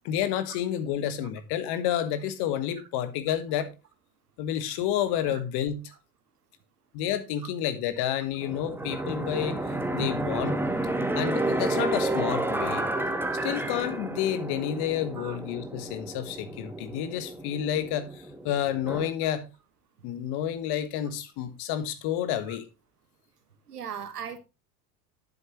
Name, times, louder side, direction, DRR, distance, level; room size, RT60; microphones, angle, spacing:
voice 1, 0.0-3.7 4.4-5.8 6.9-9.6 9.9-10.6 11.1-12.9 13.4-19.5 20.0-22.6, left 10 dB, 55° left, 1.6 m, -30 dB
sound 1, 8.4-19.1, right 2 dB, 5° right, 1.3 m, -31 dB
voice 2, 23.7-24.4, right 8 dB, 85° right, 1.4 m, -38 dB
9.7 x 8.0 x 3.1 m
hypercardioid pair, 70°, 45 cm